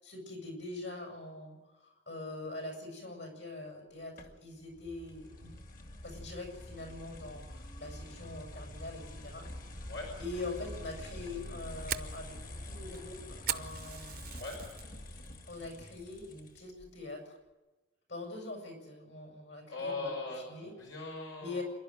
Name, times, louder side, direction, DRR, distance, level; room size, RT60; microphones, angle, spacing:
voice 1, 0.0-5.5 6.0-9.5 10.2-14.2 15.5-17.4 18.1-20.1 20.5-20.7 21.4-21.6, left 2 dB, 65° left, 2 dB, 7.4 m, -43 dB
sound 1, 4.2-16.9, left 1 dB, 45° left, 1.9 m, -46 dB
Fire, 11.3-14.9 15.3-15.6 16.0-16.2 16.7-17.0, right 11 dB, 50° right, 0.7 m, -39 dB
voice 2, 19.7-21.6, left 3 dB, 85° left, 0 dB, 5.6 m, -39 dB
27.0 x 11.5 x 9.3 m, 1.1 s
head